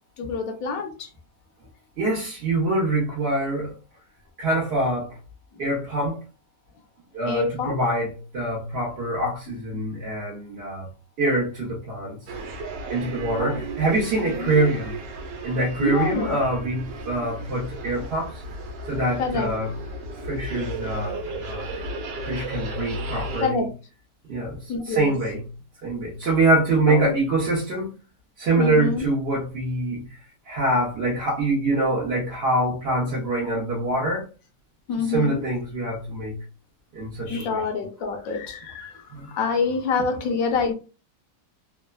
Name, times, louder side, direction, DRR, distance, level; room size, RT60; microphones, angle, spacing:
voice 1, 0.2-1.1 7.3-7.8 9.7-9.8 13.4-13.6 14.4-14.5 15.8-16.3 19.2-19.5 23.4-23.7 24.7-25.0 26.9-27.1 28.6-29.0 34.9-35.4 37.3-38.9 39.3-40.7, left 4 dB, 65° left, 3 dB, 1.0 m, -26 dB
voice 2, 2.0-3.8 4.4-5.2 5.6-6.2 7.1-10.9 11.2-12.2 12.9-15.0 15.4-18.4 18.9-19.8 20.2-21.8 22.3-23.7 24.3-25.5 25.8-27.9 28.4-30.2 30.5-34.3 35.0-36.4 36.9-37.6 39.1-39.3, right 2 dB, 55° right, -4 dB, 0.7 m, -25 dB
sound 1, 12.3-23.5, right 2 dB, 85° right, 1.3 m, -34 dB
3.2 x 2.0 x 2.3 m, 0.33 s
omnidirectional pair, 1.8 m